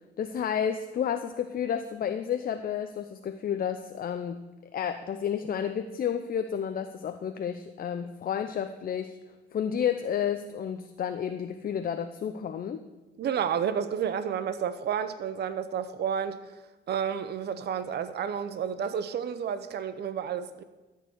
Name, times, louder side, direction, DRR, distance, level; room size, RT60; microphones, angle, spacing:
voice 1, 0.2-4.4 4.7-9.2 9.5-12.8, left 8 dB, 45° left, 0.6 m, -31 dB
voice 2, 13.2-16.5 16.9-20.6, right 8 dB, 55° right, 0.7 m, -31 dB
13.0 x 4.7 x 8.1 m
cardioid pair, 90°, 20 cm